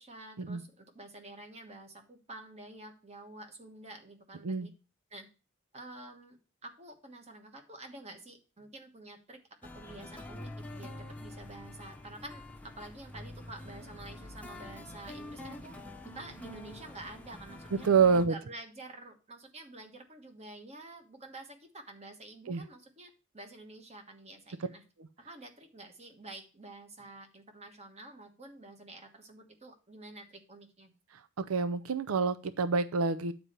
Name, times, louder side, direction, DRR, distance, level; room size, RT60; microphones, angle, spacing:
voice 1, 0.0-4.7 5.1-5.3 5.7-6.4 6.6-9.4 9.7-15.8 16.1-17.9 18.3-24.8 25.2-30.9, right 2 dB, 30° right, 5 dB, 1.4 m, -49 dB
sound 1, 9.6-18.3, left 1 dB, 5° left, 0.8 m, -46 dB
voice 2, 17.8-18.3 22.5-22.6 31.4-33.3, right 5 dB, 90° right, 11 dB, 0.5 m, -27 dB
8.7 x 4.3 x 6.7 m, 0.33 s
head